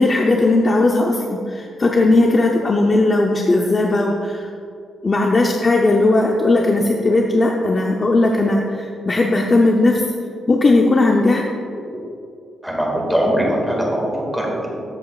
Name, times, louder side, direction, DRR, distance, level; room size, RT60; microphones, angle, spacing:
voice 1, 0.0-4.5 5.0-10.0 10.5-11.4, left 2 dB, 30° left, 1 dB, 0.6 m, -17 dB
voice 2, 12.6-14.8, equal, ahead, -2 dB, 2.0 m, -21 dB
13.5 x 7.3 x 2.4 m, 2.4 s
cardioid pair, 115°, 0 cm